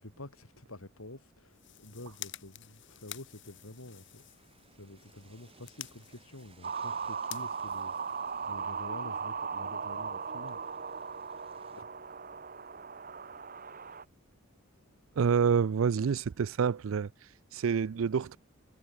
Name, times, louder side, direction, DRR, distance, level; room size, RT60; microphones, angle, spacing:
voice 1, 0.0-4.2 4.8-10.6 11.8-11.9, left 1 dB, 85° left, 3.7 m, -48 dB
sound 1, 1.4-8.7, left 13 dB, 60° left, 3.2 m, -50 dB
sound 2, 2.9-11.8, right 4 dB, 25° right, 6.5 m, -64 dB
sound 3, 6.6-14.0, right 6 dB, 45° right, 1.7 m, -38 dB
voice 2, 15.2-17.1 17.5-18.4, right 6 dB, 70° right, 0.4 m, -27 dB
head